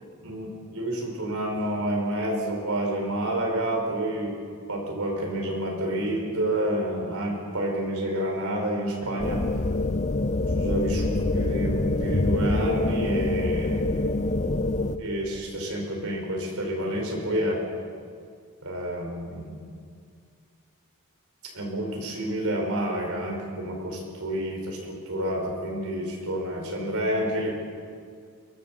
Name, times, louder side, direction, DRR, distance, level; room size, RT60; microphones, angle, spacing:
voice 1, 0.2-4.3 4.7-9.4 10.6-13.9 15.0-17.6 18.6-19.5 21.5-27.5, right 1 dB, 70° right, 0 dB, 5.2 m, -29 dB
sound 1, 9.2-15.0, left 2 dB, 30° left, 0.7 m, -25 dB
23.0 x 18.0 x 7.5 m, 2.2 s
head